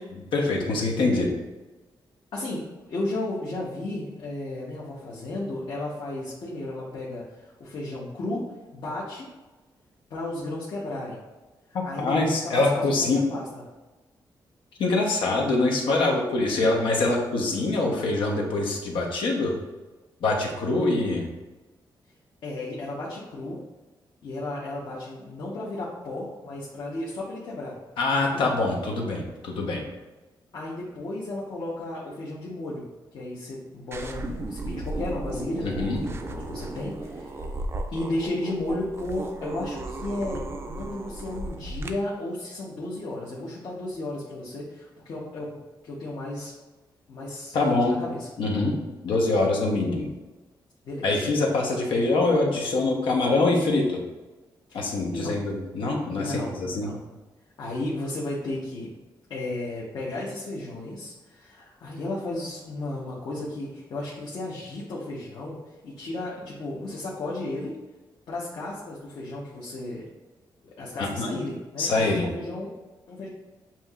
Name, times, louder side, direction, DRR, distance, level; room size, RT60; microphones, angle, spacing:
voice 1, 0.1-1.3 11.7-13.2 14.8-19.5 20.2-21.2 28.0-29.8 35.6-36.0 47.5-48.0 48.4-48.8 49.0-50.1 51.0-54.0 54.7-56.9 71.0-71.4 71.8-72.3, left 2 dB, 90° left, 0 dB, 0.9 m, -24 dB
voice 2, 2.3-2.6 2.9-8.4 8.7-9.3 10.1-11.2 11.8-13.6 22.4-23.6 24.2-27.7 28.3-28.5 30.5-37.5 37.9-40.4 40.7-45.6 45.8-46.5 47.1-48.3 50.8-51.2 54.7-55.4 56.1-57.0 57.6-58.9 59.3-65.6 65.8-67.7 68.3-70.1 70.6-72.8 73.1-73.3, left 2 dB, 65° left, -6 dB, 0.9 m, -34 dB
sound 1, 33.9-41.9, right 2 dB, 30° right, 0.4 m, -35 dB
7.3 x 2.7 x 2.4 m, 1.2 s
wide cardioid pair, 140°, 8 cm